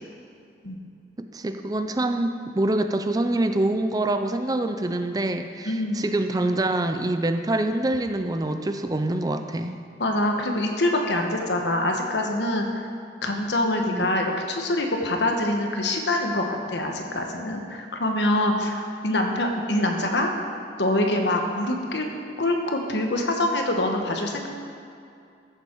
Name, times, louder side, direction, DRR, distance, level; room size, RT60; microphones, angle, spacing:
voice 1, 1.2-9.8 13.9-14.1, right 2 dB, 20° right, 7 dB, 0.4 m, -25 dB
voice 2, 5.7-6.1 10.0-12.7 13.2-20.3 20.8-22.1 22.4-24.5, left 1 dB, 75° left, 3 dB, 1.3 m, -25 dB
14.5 x 7.2 x 4.6 m, 2.5 s
head